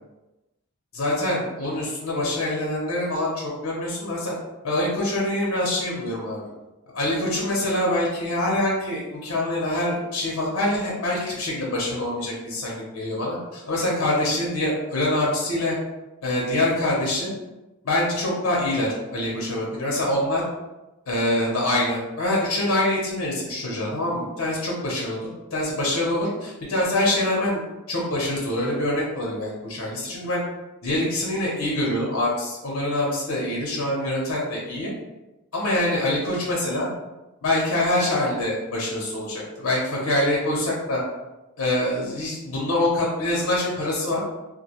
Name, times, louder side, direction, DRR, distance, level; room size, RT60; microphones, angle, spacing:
voice 1, 0.9-4.3 4.6-6.5 6.9-15.8 16.2-17.3 17.8-20.4 21.1-25.2 25.5-30.4 30.8-34.9 35.5-36.9 37.4-41.0 41.6-44.2, left 1 dB, 65° left, -3 dB, 0.6 m, -25 dB
2.4 x 2.2 x 2.8 m, 1.0 s
head